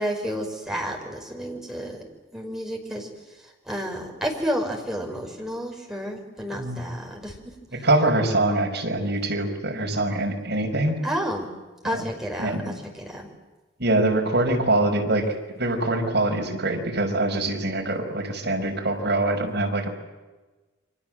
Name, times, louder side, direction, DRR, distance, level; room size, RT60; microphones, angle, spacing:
voice 1, 0.0-2.0 2.3-3.1 3.4-7.4 7.7-7.9 11.0-11.5 11.8-13.3, equal, ahead, 0 dB, 5.6 m, -31 dB
voice 2, 6.5-6.8 7.8-11.0 11.8-12.0 12.4-12.7 13.8-15.2 15.6-19.9, right 2 dB, 60° right, 1 dB, 5.9 m, -24 dB
29.5 x 24.5 x 7.8 m, 1.2 s
head